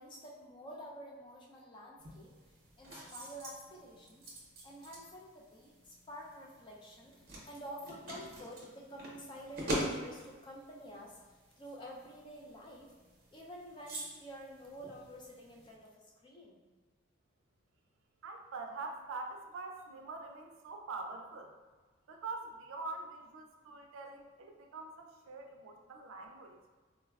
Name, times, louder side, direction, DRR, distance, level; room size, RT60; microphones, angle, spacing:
voice 1, 0.0-2.3 2.8-4.3 4.6-7.1 7.4-11.2 11.6-12.9 13.3-16.6, equal, 25° left, -3 dB, 0.4 m, -49 dB
sound 1, 2.0-15.7, equal, 45° right, 0.7 m, -45 dB
voice 2, 18.2-21.5 22.1-26.6, right 3 dB, 75° right, 3 dB, 0.4 m, -44 dB
3.9 x 2.2 x 2.3 m, 1.4 s
head